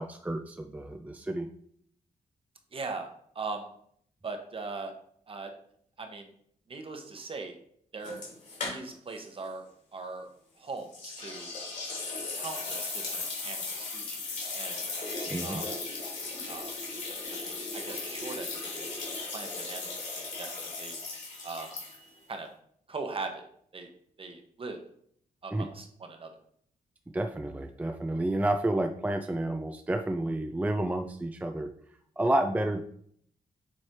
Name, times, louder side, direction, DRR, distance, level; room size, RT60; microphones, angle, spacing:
voice 1, 0.0-1.5 15.3-15.6 25.5-25.7 27.1-31.7 32.2-32.8, right 1 dB, 10° right, 5 dB, 0.4 m, -30 dB
voice 2, 2.7-3.1 3.3-3.7 4.2-4.9 5.3-5.5 6.0-6.3 6.7-7.5 7.9-8.3 8.6-9.6 9.9-10.3 10.6-11.5 12.3-14.8 15.4-15.6 16.5-16.7 17.3-19.0 19.3-21.0 21.4-21.7 22.3-22.5 22.9-23.4 23.7-23.9 24.2-24.8 25.4-26.3, right 3 dB, 40° right, 5 dB, 1.1 m, -40 dB
sound 1, 8.0-9.2 9.4-9.5 10.9-22.2, left 3 dB, 60° left, 2.6 m, -37 dB
7.1 x 3.2 x 4.5 m, 0.64 s
cardioid pair, 105°, 14 cm